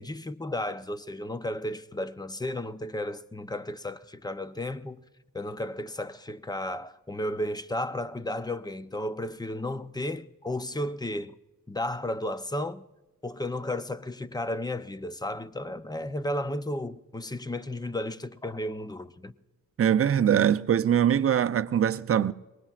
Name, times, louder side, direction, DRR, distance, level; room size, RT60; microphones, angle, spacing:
voice 1, 0.0-5.1 5.3-11.4 11.7-12.8 13.2-19.3, left 1 dB, 10° left, 0.6 m, -33 dB
voice 2, 19.8-22.3, right 9 dB, 45° right, 0.6 m, -22 dB
23.0 x 19.5 x 2.5 m
cardioid pair, 80°, 33 cm